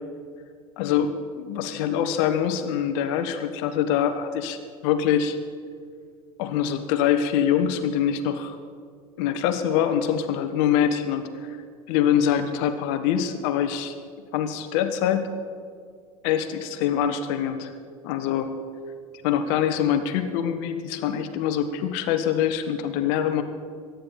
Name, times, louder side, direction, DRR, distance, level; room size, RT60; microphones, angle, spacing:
voice 1, 0.8-5.4 6.4-8.6 9.2-11.6 11.9-14.0 14.3-15.3 16.2-17.7 18.0-18.5 19.2-23.4, left 9 dB, 50° left, 9 dB, 1.2 m, -24 dB
22.5 x 9.6 x 4.2 m, 2.1 s
figure-of-eight pair, 80°, 19 cm